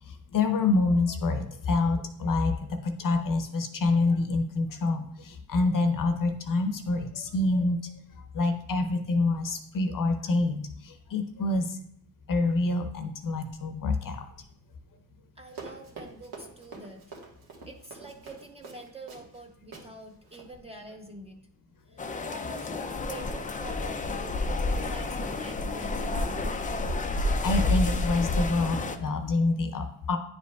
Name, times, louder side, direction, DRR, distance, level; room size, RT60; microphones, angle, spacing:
voice 1, 0.3-7.8 8.3-11.8 12.3-14.2 27.4-30.2, left 3 dB, 50° left, 7 dB, 0.7 m, -27 dB
voice 2, 15.4-17.0 17.7-21.4 21.9-24.4 24.7-26.5, right 1 dB, 15° right, 2 dB, 0.7 m, -45 dB
Run, 15.5-19.4 19.7-19.9 20.2-20.5, right 4 dB, 65° right, 1.5 m, -45 dB
sound 1, 22.0-29.0, left 2 dB, 20° left, 0.3 m, -29 dB
9.9 x 5.1 x 2.3 m, 0.68 s
cardioid pair, 130°, 42 cm